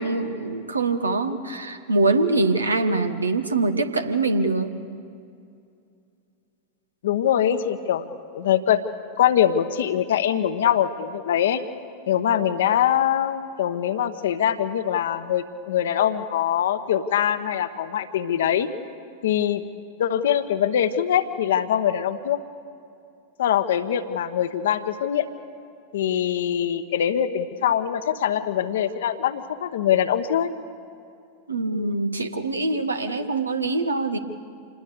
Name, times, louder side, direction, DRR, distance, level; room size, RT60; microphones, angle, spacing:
voice 1, 0.0-4.7 31.5-34.2, right 3 dB, 80° right, 8 dB, 1.3 m, -24 dB
voice 2, 7.0-8.0 8.3-8.8 9.2-11.6 12.1-18.7 19.2-19.6 20.0-22.4 23.4-25.3 25.9-30.5, left 10 dB, 60° left, 10 dB, 1.1 m, -23 dB
27.5 x 20.0 x 6.8 m, 2.5 s
figure-of-eight pair, 90°, 0 cm